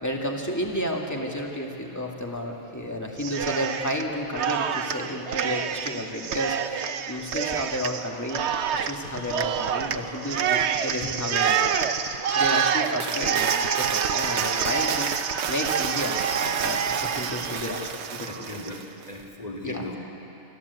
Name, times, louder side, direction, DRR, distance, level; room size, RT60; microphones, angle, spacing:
voice 1, 0.0-8.4 8.7-15.1 15.5-18.6 19.6-19.9, left 1 dB, 15° left, 0 dB, 2.1 m, -32 dB
Cheering, 3.2-4.0 4.3-18.8, right 7 dB, 70° right, 1.1 m, -27 dB
voice 2, 18.3-20.0, left 2 dB, 35° left, -2 dB, 2.8 m, -37 dB
26.5 x 14.0 x 8.2 m, 3.0 s
omnidirectional pair, 1.2 m